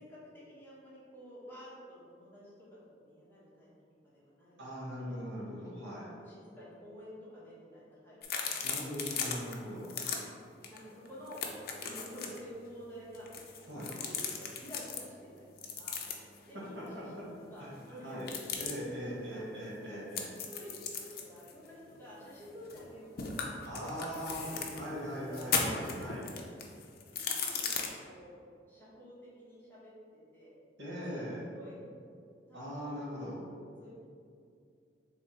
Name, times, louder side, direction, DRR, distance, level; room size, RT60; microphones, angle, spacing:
voice 1, 0.0-3.7 4.0-4.6 5.0-5.2 6.2-8.7 9.0-9.2 10.7-15.4 15.8-18.6 19.3-19.4 19.9-20.0 20.5-24.1 24.4-25.4 26.2-26.4 27.1-28.4 28.7-30.6 30.8-31.8 32.5-33.4 33.8-33.9, equal, 10° left, -9 dB, 1.2 m, -51 dB
voice 2, 4.6-6.1 8.6-9.9 13.7-13.9 16.5-17.3 17.6-17.7 18.0-18.3 18.6-20.3 23.6-24.5 24.8-26.3 30.8-31.4 32.5-33.4, equal, 85° right, -5 dB, 1.3 m, -40 dB
sound 1, 8.2-9.5 9.8-10.2 10.6-10.8 11.1-12.4 13.1-15.0 15.6-16.4 18.2-18.7 20.1-22.9 23.2-24.8 25.3-27.9, left 6 dB, 60° left, 0.5 m, -37 dB
3.5 x 3.4 x 4.4 m, 2.4 s
head